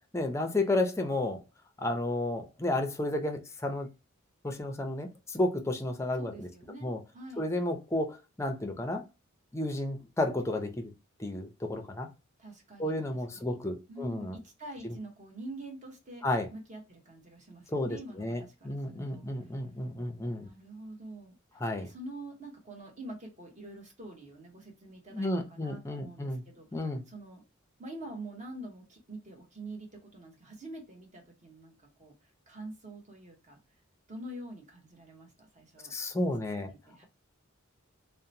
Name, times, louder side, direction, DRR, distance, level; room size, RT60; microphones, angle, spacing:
voice 1, 0.1-1.4 1.8-3.9 4.4-6.5 6.8-7.0 7.4-9.0 9.5-10.9 11.2-12.1 12.8-14.4 16.2-16.5 17.7-20.5 21.6-21.9 25.1-26.4 26.7-27.0 35.9-36.7, left 1 dB, 15° left, 0.4 m, -32 dB
voice 2, 6.1-7.5 12.4-13.0 13.3-13.6 13.9-16.2 16.5-19.5 20.4-27.4 27.8-31.7 32.0-32.1 32.5-33.6 34.1-37.0, right 1 dB, 35° right, 0.9 m, -46 dB
2.8 x 2.0 x 2.6 m
head